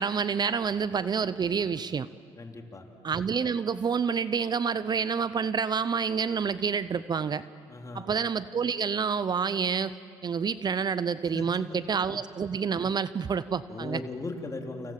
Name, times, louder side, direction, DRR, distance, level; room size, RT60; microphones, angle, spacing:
voice 1, 0.0-2.1 3.0-7.4 7.9-10.0 10.2-14.0, right 6 dB, 40° right, 15 dB, 0.7 m, -28 dB
voice 2, 2.4-2.8 7.7-8.1 11.3-11.8 12.1-12.2 13.7-14.9, left 2 dB, 30° left, 3 dB, 3.7 m, -38 dB
29.0 x 26.5 x 7.5 m, 2.3 s
supercardioid pair, 65°, 11 cm